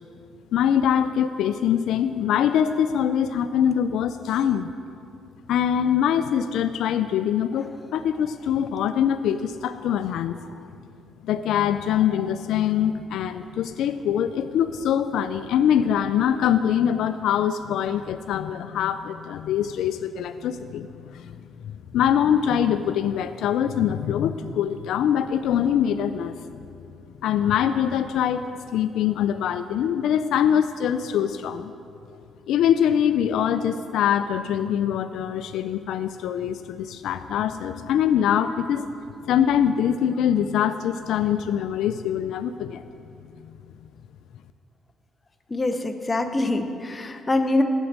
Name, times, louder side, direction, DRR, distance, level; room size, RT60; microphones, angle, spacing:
voice 1, 0.5-4.7 5.5-10.6 11.2-20.9 21.1-21.4 21.9-26.4 27.2-31.7 32.5-38.9 39.3-42.8, left 9 dB, 80° left, 11 dB, 0.3 m, -23 dB
voice 2, 45.5-47.6, left 2 dB, 25° left, 7 dB, 0.8 m, -24 dB
8.2 x 8.0 x 7.4 m, 2.5 s
cardioid pair, 90°, 0 cm